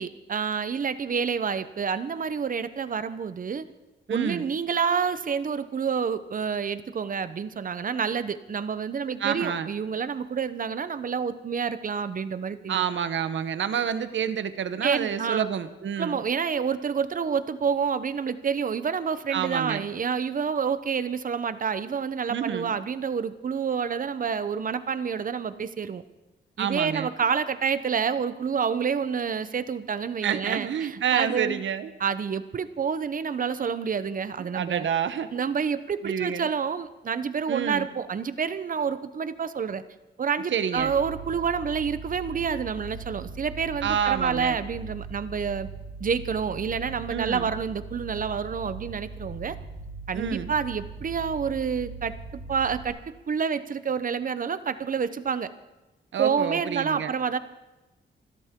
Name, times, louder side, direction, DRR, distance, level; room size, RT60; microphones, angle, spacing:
voice 1, 0.0-3.6 4.1-12.8 14.8-15.5 16.0-26.0 26.6-31.6 32.0-34.9 35.3-39.8 40.2-45.7 46.0-49.6 50.1-53.0 53.3-55.5 56.2-57.4, right 6 dB, 45° right, 13 dB, 0.8 m, -28 dB
voice 2, 4.1-4.5 9.2-9.7 12.7-16.2 19.3-19.8 22.3-22.8 26.6-27.1 30.2-31.9 34.4-35.3 36.0-36.5 37.5-37.9 40.5-40.9 43.8-44.6 47.1-47.5 50.1-50.5 56.1-57.1, right 8 dB, 80° right, 12 dB, 1.0 m, -28 dB
sound 1, 40.8-52.9, right 4 dB, 65° left, 7.6 m, -40 dB
27.5 x 13.0 x 3.7 m, 1.0 s
wide cardioid pair, 110°, 19 cm